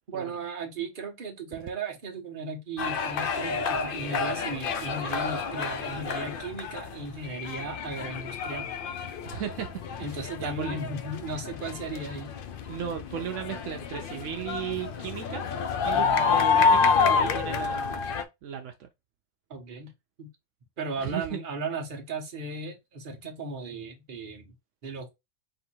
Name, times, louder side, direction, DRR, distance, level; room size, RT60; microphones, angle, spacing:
voice 1, 0.1-8.7 10.0-12.3 15.9-16.3 19.5-19.9 20.2-20.3 20.8-24.5 24.8-25.1, right 3 dB, 45° right, 1.1 m, -36 dB
sound 1, 2.8-18.2, left 5 dB, 55° left, 0.6 m, -28 dB
voice 2, 9.2-9.8 10.1-10.8 12.7-15.5 15.8-18.0 18.4-18.9 21.0-21.4, right 9 dB, 75° right, 0.9 m, -36 dB
3.8 x 2.8 x 4.4 m
omnidirectional pair, 1.3 m